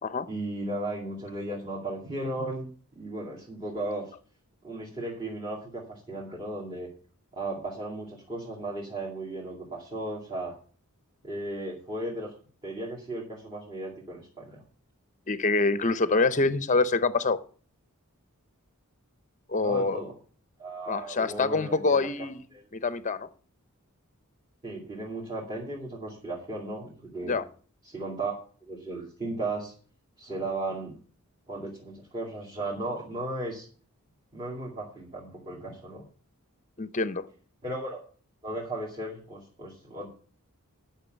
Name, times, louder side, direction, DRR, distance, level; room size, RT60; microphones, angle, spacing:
voice 1, 0.3-4.0 4.6-6.9 7.3-10.5 11.2-12.3 12.6-14.6 19.6-20.1 20.6-22.1 22.5-22.6 24.6-27.4 27.8-28.4 28.6-29.7 30.2-30.9 31.5-33.7 34.3-36.0 37.6-38.0 38.4-40.1, right 2 dB, 25° right, -4 dB, 2.4 m, -35 dB
voice 2, 15.3-17.4 19.5-20.0 20.9-22.4 22.7-23.3 27.2-27.4 36.8-37.3, left 3 dB, 35° left, 14 dB, 0.7 m, -25 dB
10.5 x 5.9 x 7.9 m, 0.43 s
head